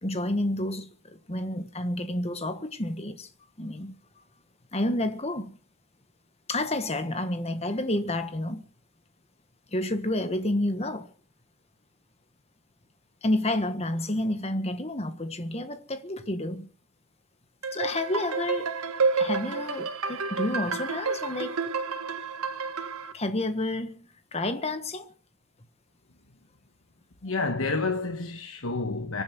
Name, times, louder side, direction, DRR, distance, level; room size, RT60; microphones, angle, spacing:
voice 1, 0.0-3.3 3.6-4.0 4.7-5.6 6.5-8.6 9.7-11.1 13.2-16.7 17.7-18.7 19.1-21.6 23.1-25.1, left 1 dB, 30° left, 1.5 m, -30 dB
sound 1, 17.6-23.1, right 4 dB, 75° right, 1.6 m, -30 dB
voice 2, 27.2-29.2, left 3 dB, 60° left, 1.3 m, -29 dB
24.0 x 8.8 x 6.1 m
head